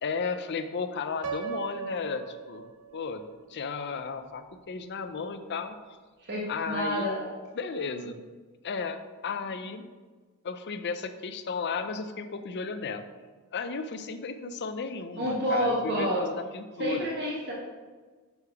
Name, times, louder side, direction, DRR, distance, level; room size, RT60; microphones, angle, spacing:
voice 1, 0.0-5.8 6.5-7.1 7.5-8.2 8.6-9.9 10.4-13.0 13.5-17.1, left 4 dB, 50° left, 9 dB, 0.5 m, -34 dB
Piano, 1.2-3.2, right 6 dB, 75° right, 0.7 m, -38 dB
voice 2, 6.2-7.4 15.2-16.2 16.8-17.5, equal, 50° right, -4 dB, 1.2 m, -29 dB
6.5 x 4.7 x 4.8 m, 1.4 s
head